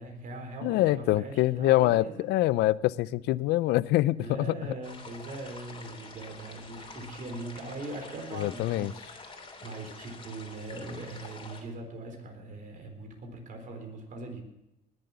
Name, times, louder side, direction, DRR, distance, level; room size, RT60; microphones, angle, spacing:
voice 1, 0.0-2.2 4.2-14.4, right 2 dB, 50° right, 4 dB, 3.9 m, -41 dB
voice 2, 0.6-4.6 8.3-8.9, left 16 dB, 80° left, 20 dB, 0.5 m, -25 dB
sound 1, 4.8-11.6, left 3 dB, 30° left, 3.3 m, -47 dB
19.5 x 7.8 x 6.9 m, 0.89 s
cardioid pair, 110°, 17 cm